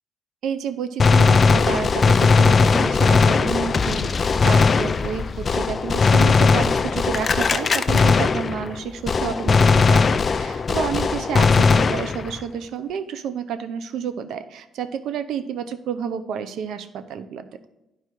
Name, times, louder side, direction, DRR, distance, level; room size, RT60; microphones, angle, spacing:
voice 1, 0.4-17.5, right 7 dB, 80° right, 11 dB, 0.6 m, -30 dB
Gunshot gunfire, 1.0-8.8 9.1-12.4, left 4 dB, 40° left, 0.4 m, -18 dB
10.5 x 4.7 x 4.6 m, 0.91 s
cardioid pair, 90°, 0 cm